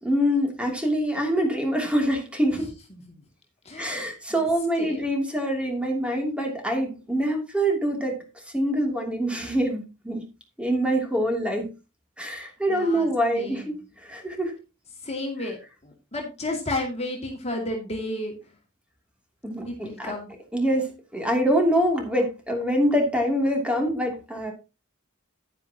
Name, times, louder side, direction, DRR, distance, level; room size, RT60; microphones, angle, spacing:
voice 1, 0.0-2.7 3.8-10.2 10.6-11.7 12.2-14.5 19.4-20.1 20.5-24.5, equal, 5° right, 1 dB, 2.9 m, -25 dB
voice 2, 2.5-3.0 3.6-4.4 4.8-5.0 12.7-13.1 13.3-13.7 15.0-18.4 19.7-20.3, left 1 dB, 30° left, 2 dB, 2.4 m, -33 dB
10.5 x 9.9 x 2.9 m, 0.28 s
head